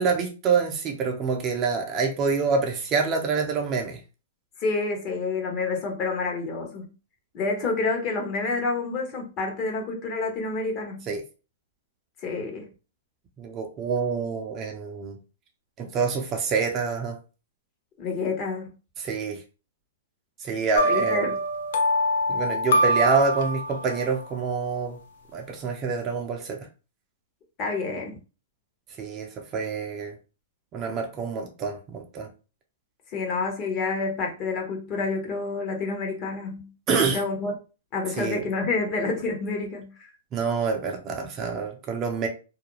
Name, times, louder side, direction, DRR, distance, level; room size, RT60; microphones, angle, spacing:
voice 1, 0.0-4.0 11.1-11.2 13.4-15.2 15.8-17.2 19.0-19.4 20.4-21.3 22.3-25.0 25.3-26.7 29.0-30.1 30.7-32.3 36.9-37.2 38.2-38.4 40.3-42.3, right 5 dB, 30° right, 0.5 m, -27 dB
voice 2, 4.6-6.9 7.3-11.1 12.2-12.7 18.0-18.7 20.9-21.4 27.6-28.2 33.1-36.7 37.1-37.5 37.9-40.1, left 3 dB, 35° left, 0.8 m, -28 dB
sound 1, 20.7-24.0, equal, 70° left, 0.5 m, -24 dB
2.4 x 2.1 x 2.9 m
hypercardioid pair, 130°, 0 cm